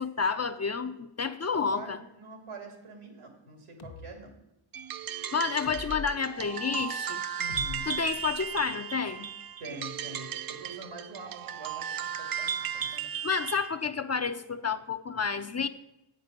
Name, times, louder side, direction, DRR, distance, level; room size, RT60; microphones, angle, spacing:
voice 1, 0.0-2.0 5.3-7.2 7.9-9.3 13.2-15.7, left 5 dB, 30° left, 9 dB, 0.6 m, -30 dB
voice 2, 1.7-4.3 7.4-7.9 9.6-13.1, right 1 dB, 80° right, 3 dB, 2.5 m, -44 dB
sound 1, 3.8-4.1 5.6-6.2 7.5-8.6, left 5 dB, 50° left, 1.1 m, -42 dB
sound 2, 4.7-13.8, right 8 dB, 45° right, 0.6 m, -36 dB
8.6 x 5.3 x 6.7 m, 0.90 s
cardioid pair, 55°, 50 cm